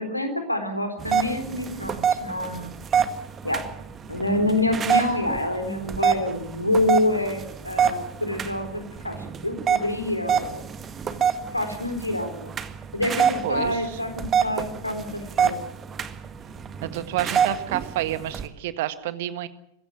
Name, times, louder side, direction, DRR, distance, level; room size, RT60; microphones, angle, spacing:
voice 1, 0.0-2.8 3.4-3.6 4.1-10.6 11.1-11.2 11.5-12.5 12.9-15.6, left 1 dB, 85° left, 7 dB, 3.7 m, -27 dB
sound 1, 1.0-18.5, right 7 dB, 25° right, 1.6 m, -27 dB
voice 2, 13.4-14.0 16.9-19.5, right 14 dB, 50° right, 12 dB, 1.6 m, -29 dB
22.0 x 16.0 x 9.2 m, 0.77 s
figure-of-eight pair, 90°, 0 cm